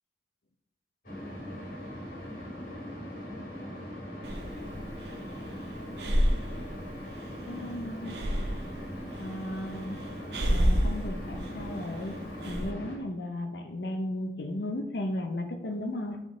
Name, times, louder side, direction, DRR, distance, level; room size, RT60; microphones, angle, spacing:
sound 1, 1.0-13.0, equal, 50° left, 2.3 m, -40 dB
Breathing, 4.2-12.7, equal, 75° right, 0.8 m, -31 dB
voice 1, 7.5-8.1 9.2-10.0 10.5-12.2 12.5-16.2, left 1 dB, 75° left, 5 dB, 0.6 m, -35 dB
7.3 x 3.7 x 3.7 m, 0.88 s
head